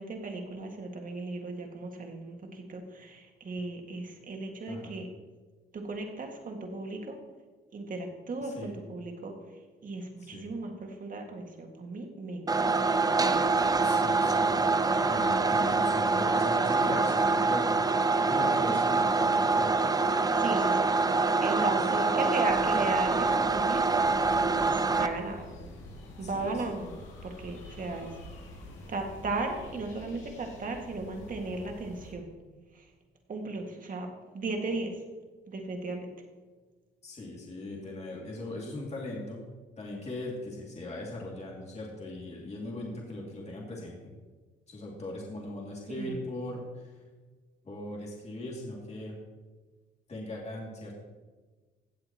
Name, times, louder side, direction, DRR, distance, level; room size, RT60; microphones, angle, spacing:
voice 1, 0.0-5.1 5.7-7.2 7.7-9.3 9.8-12.9 13.9-14.2 20.4-20.9 21.4-24.1 24.6-25.4 26.2-26.9 27.2-28.2 28.9-32.3 32.7-32.9 33.3-34.1 34.3-34.9 35.5-36.1 45.9-46.2, right 3 dB, 45° right, 3 dB, 1.9 m, -36 dB
voice 2, 8.4-8.8 10.2-10.5 13.8-14.5 14.8-19.7 26.2-26.8 37.0-39.4 39.8-44.1 44.7-46.9 47.6-49.1 50.1-51.0, left 1 dB, 35° left, -3 dB, 2.5 m, -39 dB
sound 1, 12.5-25.1, right 3 dB, 20° right, 0.6 m, -25 dB
sound 2, 22.5-32.1, left 1 dB, 90° left, 2.2 m, -47 dB
16.0 x 7.8 x 3.0 m, 1.3 s
cardioid pair, 90°, 20 cm